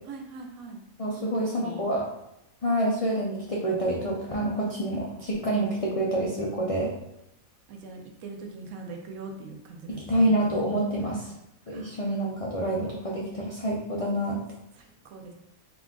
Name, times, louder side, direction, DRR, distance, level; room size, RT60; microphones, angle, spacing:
voice 1, 0.1-0.8 1.1-1.8 7.7-10.3 11.7-12.0 14.7-15.3, right 4 dB, 85° right, 2 dB, 1.1 m, -42 dB
voice 2, 1.0-2.0 2.6-6.9 9.9-11.3 11.7-14.4, right 1 dB, 65° left, -4 dB, 0.3 m, -27 dB
3.9 x 2.4 x 3.6 m, 0.82 s
omnidirectional pair, 1.4 m